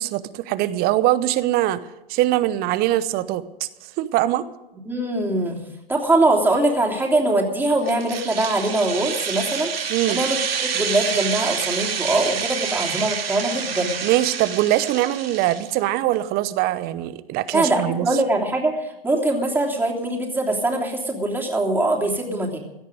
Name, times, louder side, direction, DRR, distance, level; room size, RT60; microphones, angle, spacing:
voice 1, 0.0-1.8 2.1-3.7 4.0-4.5 9.9-10.2 14.0-18.1, right 14 dB, 30° right, 15 dB, 0.8 m, -22 dB
voice 2, 4.8-5.6 5.9-14.0 17.5-22.6, right 2 dB, 5° right, 0 dB, 3.2 m, -22 dB
sound 1, 7.9-15.7, right 7 dB, 75° right, 2.9 m, -28 dB
17.0 x 13.0 x 5.2 m, 0.95 s
hypercardioid pair, 115°, 30 cm